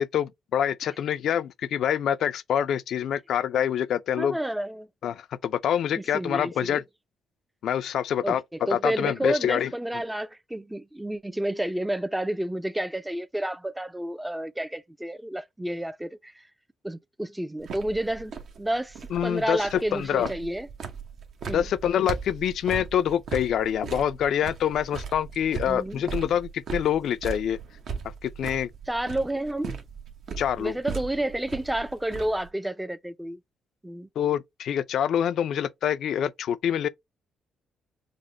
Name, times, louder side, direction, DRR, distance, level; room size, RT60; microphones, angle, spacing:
voice 1, 0.0-4.4 5.0-6.8 7.6-8.4 8.7-10.0 19.1-20.3 21.5-27.6 28.2-28.7 30.4-30.8 34.2-36.9, left 9 dB, 70° left, 0.3 m, -26 dB
voice 2, 4.2-4.9 6.1-6.8 8.2-8.4 8.7-16.3 16.8-18.3 18.6-18.9 19.2-20.7 21.5-21.7 25.7-26.0 28.9-29.8 30.6-33.4 33.8-34.1, right 1 dB, 5° right, 0.4 m, -30 dB
sound 1, 17.6-32.5, right 6 dB, 65° right, 0.8 m, -38 dB
5.1 x 2.0 x 2.7 m
cardioid pair, 90°, 0 cm